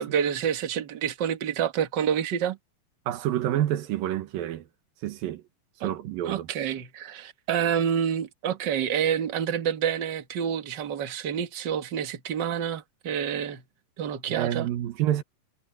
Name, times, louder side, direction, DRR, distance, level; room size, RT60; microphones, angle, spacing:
voice 1, 0.0-2.6 5.8-5.9 6.2-13.6 14.0-14.7, right 8 dB, 50° right, 1.4 m, -28 dB
voice 2, 3.1-4.7 5.0-5.4 5.8-6.5 14.3-15.2, right 12 dB, 80° right, 2.9 m, -28 dB
omnidirectional pair, 4.1 m